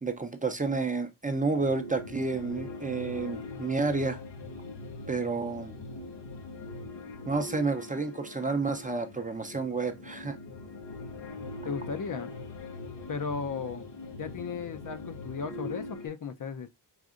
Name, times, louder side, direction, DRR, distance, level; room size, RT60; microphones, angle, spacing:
voice 1, 0.0-4.2 5.1-5.8 7.3-10.4, right 3 dB, 20° right, 0.5 m, -30 dB
sound 1, 1.4-16.1, left 2 dB, 90° left, 1.0 m, -42 dB
voice 2, 11.6-12.3 13.1-13.8 14.2-16.7, left 5 dB, 50° left, 0.6 m, -35 dB
5.0 x 2.6 x 2.4 m
cardioid pair, 75°, 41 cm